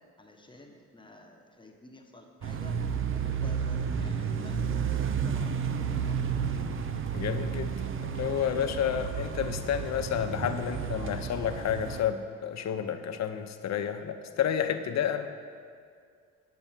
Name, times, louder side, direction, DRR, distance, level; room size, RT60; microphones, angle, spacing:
voice 1, 0.2-2.7 3.1-6.7, left 2 dB, 15° left, 1 dB, 1.1 m, -51 dB
sound 1, 2.4-12.0, right 7 dB, 45° right, 0.6 m, -32 dB
voice 2, 7.1-15.3, left 9 dB, 60° left, 8 dB, 0.7 m, -30 dB
9.2 x 5.6 x 7.3 m, 2.1 s
cardioid pair, 90°, 30 cm